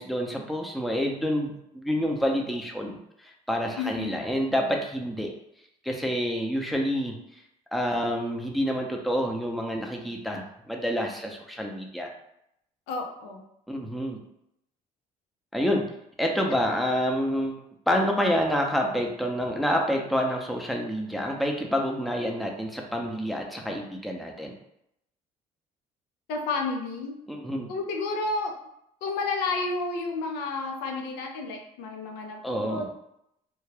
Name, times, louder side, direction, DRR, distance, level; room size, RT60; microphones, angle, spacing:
voice 1, 0.0-5.3 5.8-7.4 7.7-12.1 13.7-14.2 15.5-15.9 16.2-17.5 17.9-24.6 27.3-27.7 32.4-32.9, equal, ahead, 1 dB, 0.6 m, -28 dB
voice 2, 3.8-4.2 12.9-13.4 26.3-27.2 27.7-28.5 29.0-32.9, left 3 dB, 85° left, 2 dB, 0.5 m, -31 dB
2.2 x 2.2 x 3.2 m, 0.78 s
supercardioid pair, 75°, 16 cm